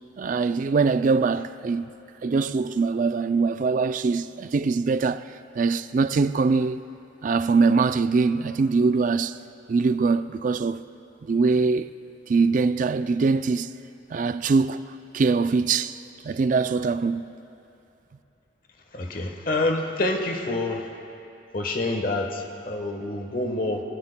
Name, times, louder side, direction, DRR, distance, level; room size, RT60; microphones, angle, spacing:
voice 1, 0.2-1.9 2.2-6.8 7.2-9.4 9.7-10.8 11.2-11.9 12.3-13.7 14.1-14.8 15.1-16.0 16.2-17.3, right 4 dB, 45° right, 0.3 m, -23 dB
voice 2, 18.9-20.9 21.5-23.8, left 2 dB, 45° left, 1.2 m, -27 dB
21.5 x 17.0 x 2.2 m
head